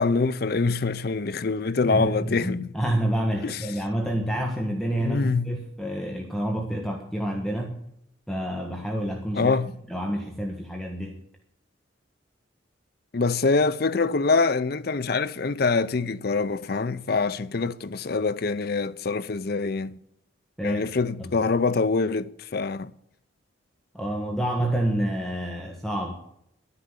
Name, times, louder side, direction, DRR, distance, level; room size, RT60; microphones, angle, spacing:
voice 1, 0.0-2.7 3.4-3.6 5.0-5.6 9.3-9.7 13.1-20.0 20.6-22.9, left 4 dB, 50° left, 0.5 m, -25 dB
voice 2, 1.8-7.8 8.3-9.5 9.9-11.2 20.6-20.8 23.9-26.1, right 1 dB, ahead, 1.3 m, -28 dB
11.5 x 9.7 x 8.1 m
head